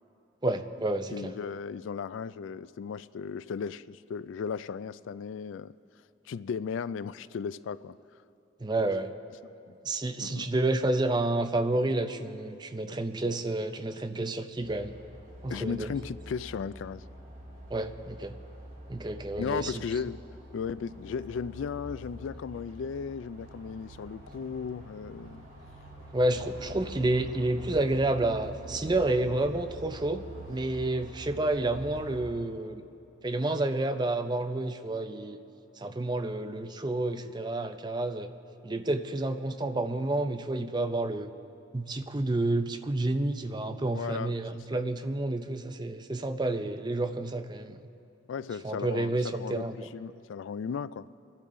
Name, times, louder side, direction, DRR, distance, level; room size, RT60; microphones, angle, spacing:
voice 1, 0.4-1.3 8.6-9.1 9.8-15.0 15.4-15.9 17.7-18.4 18.9-19.8 26.1-30.2 30.5-32.8 33.2-35.4 35.8-38.3 38.6-41.3 41.7-47.8 48.6-49.8, right 2 dB, 20° right, 8 dB, 0.5 m, -30 dB
voice 2, 1.1-5.7 6.3-8.0 10.2-10.5 15.5-17.0 19.4-20.2 20.5-25.5 43.9-44.8 48.3-51.1, left 6 dB, 75° left, 17 dB, 0.3 m, -36 dB
sound 1, 14.6-32.3, right 2 dB, 45° right, 3.7 m, -47 dB
sound 2, 26.2-32.4, left 1 dB, 30° left, 3.5 m, -49 dB
26.5 x 11.5 x 3.7 m, 2.8 s
head